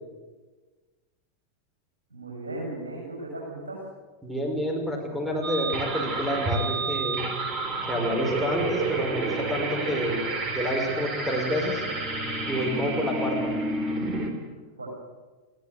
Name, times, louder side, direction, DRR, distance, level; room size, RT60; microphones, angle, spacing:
voice 1, 2.1-3.8 14.8-14.9, right 2 dB, 70° right, -3 dB, 7.4 m, -36 dB
voice 2, 4.2-7.3 7.8-10.2 10.5-11.8 12.5-13.5, equal, 5° right, 1 dB, 5.2 m, -29 dB
sound 1, 5.4-14.3, right 3 dB, 25° right, 3.6 m, -30 dB
21.5 x 16.5 x 7.9 m, 1.3 s
figure-of-eight pair, 90°, 0 cm